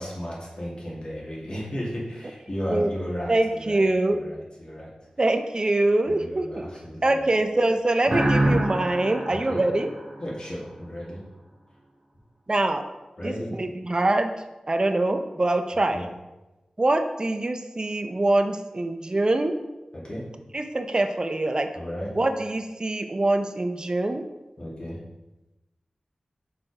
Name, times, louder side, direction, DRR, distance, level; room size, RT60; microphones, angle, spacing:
voice 1, 0.0-3.9 4.1-4.9 6.1-7.2 9.3-9.6 10.2-11.2 13.2-13.6 15.9-16.1 19.9-20.2 21.7-22.1 24.6-25.0, equal, 45° left, -5 dB, 2.5 m, -34 dB
voice 2, 3.3-4.2 5.2-6.7 7.0-9.9 12.5-12.8 13.2-14.3 14.7-16.0 16.8-19.6 20.5-21.7 22.1-24.2, right 2 dB, 40° right, 7 dB, 0.7 m, -24 dB
sound 1, 8.1-10.7, right 1 dB, 75° right, 1.6 m, -26 dB
5.9 x 4.7 x 4.9 m, 1.0 s
wide cardioid pair, 55°, 2 cm